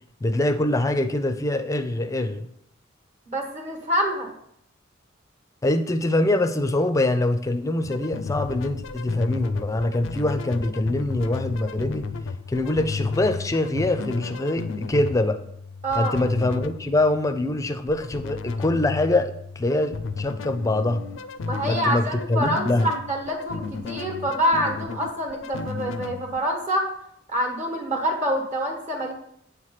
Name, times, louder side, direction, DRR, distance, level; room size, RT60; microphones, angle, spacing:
voice 1, 0.2-2.5 5.6-12.1 12.5-15.4 16.0-21.0 21.7-22.9, left 2 dB, 15° left, 9 dB, 0.4 m, -24 dB
voice 2, 3.3-4.3 15.8-16.1 21.4-26.9 27.3-29.1, equal, 40° right, 1 dB, 1.2 m, -26 dB
sound 1, 7.8-26.4, left 4 dB, 75° left, 0.4 m, -33 dB
8.2 x 3.2 x 5.7 m, 0.73 s
head